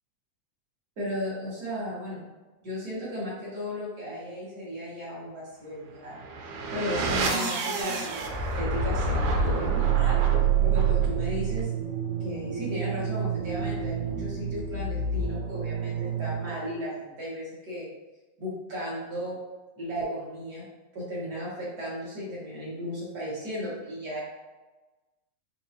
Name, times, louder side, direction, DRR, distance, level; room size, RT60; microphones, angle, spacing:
voice 1, 1.0-2.2 2.6-6.2 6.7-10.2 10.6-11.7 12.2-17.9 18.4-19.4 19.8-20.6 20.9-24.2, equal, 50° right, -8 dB, 1.2 m, -35 dB
sound 1, 6.1-16.8, right 6 dB, 85° right, 2.0 m, -27 dB
5.1 x 2.7 x 2.8 m, 1.2 s
omnidirectional pair, 3.5 m